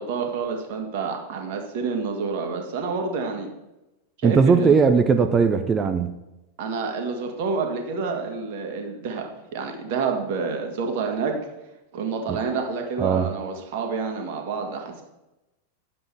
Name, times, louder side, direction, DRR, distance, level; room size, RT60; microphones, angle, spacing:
voice 1, 0.0-3.5 4.2-4.8 6.6-9.2 9.5-11.3 11.9-15.0, right 4 dB, 50° right, 3 dB, 1.8 m, -28 dB
voice 2, 4.2-6.1 12.3-12.4 13.0-13.3, right 5 dB, 20° right, 7 dB, 0.7 m, -19 dB
10.5 x 7.4 x 4.6 m, 0.97 s
figure-of-eight pair, 90°, 0 cm